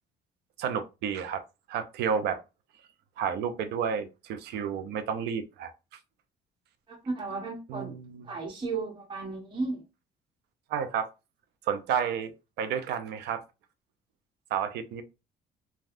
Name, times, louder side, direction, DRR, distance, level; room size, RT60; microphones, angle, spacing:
voice 1, 0.6-1.4 1.7-2.4 3.2-5.7 7.7-8.3 10.7-11.1 11.7-12.3 12.6-13.4 14.5-15.0, right 7 dB, 80° right, 0.5 m, -31 dB
voice 2, 6.9-8.0 8.2-9.8, right 3 dB, 30° right, 1.1 m, -34 dB
3.4 x 2.3 x 2.5 m
cardioid pair, 110°, 17 cm